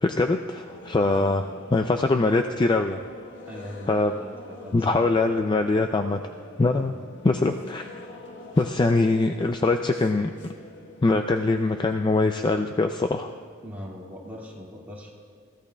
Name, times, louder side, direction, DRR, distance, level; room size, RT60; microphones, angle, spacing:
voice 1, 0.0-1.5 1.7-3.0 3.9-4.1 4.7-6.2 6.6-6.9 7.2-8.0 8.6-10.3 11.0-13.3, left 3 dB, 20° left, 6 dB, 0.3 m, -23 dB
sound 1, 0.7-12.4, left 2 dB, 55° left, 1.3 m, -45 dB
voice 2, 1.0-1.7 3.5-5.1 6.8-7.0 13.6-15.1, equal, 10° right, -4 dB, 2.1 m, -41 dB
22.0 x 15.5 x 2.3 m, 2.2 s
head